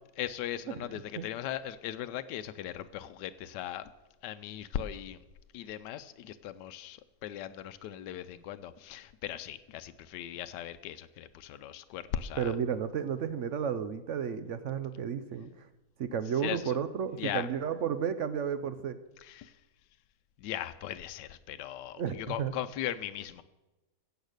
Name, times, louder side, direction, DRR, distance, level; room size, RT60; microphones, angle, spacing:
voice 1, 0.2-3.9 4.2-5.2 5.5-12.5 16.4-16.8 17.2-17.5 19.2-19.6 20.4-23.4, left 11 dB, 85° left, 11 dB, 1.2 m, -38 dB
voice 2, 12.4-15.5 16.0-19.0 22.0-22.5, right 7 dB, 65° right, 12 dB, 0.8 m, -32 dB
15.0 x 8.1 x 6.5 m, 1.1 s
omnidirectional pair, 1.8 m